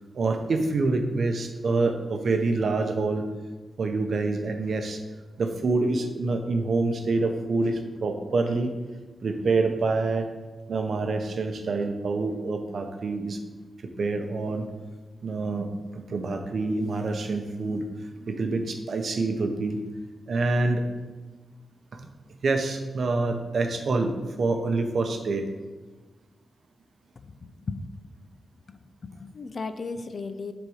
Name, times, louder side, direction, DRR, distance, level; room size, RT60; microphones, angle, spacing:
voice 1, 0.1-3.3 3.8-5.0 5.4-8.7 9.2-10.3 10.7-13.4 14.0-14.7 15.2-17.9 18.2-19.8 20.3-20.8 21.9-22.1 22.4-25.5, right 3 dB, 60° right, 6 dB, 0.7 m, -26 dB
voice 2, 27.4-27.8 28.7-30.5, left 4 dB, 45° left, 10 dB, 0.4 m, -36 dB
7.7 x 4.0 x 4.9 m, 1.3 s
wide cardioid pair, 140°, 0 cm